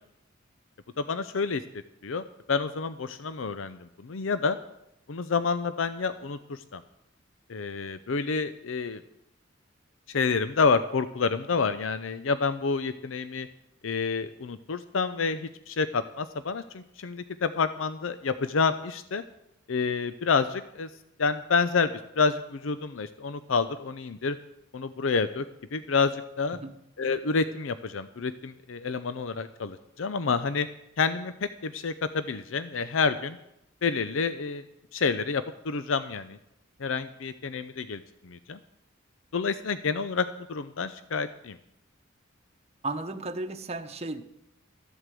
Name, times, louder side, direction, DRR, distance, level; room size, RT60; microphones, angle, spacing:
voice 1, 1.0-1.6 2.0-4.6 5.1-6.8 7.5-9.0 10.1-13.5 13.8-19.2 19.7-20.9 21.2-24.4 24.7-25.4 25.7-26.6 27.0-30.7 31.0-33.4 33.8-34.6 34.9-36.4 36.8-38.6 39.3-41.6, left 5 dB, 75° left, 12 dB, 0.6 m, -28 dB
voice 2, 42.8-44.2, right 2 dB, 35° right, 6 dB, 0.9 m, -34 dB
13.5 x 8.1 x 7.6 m, 0.82 s
head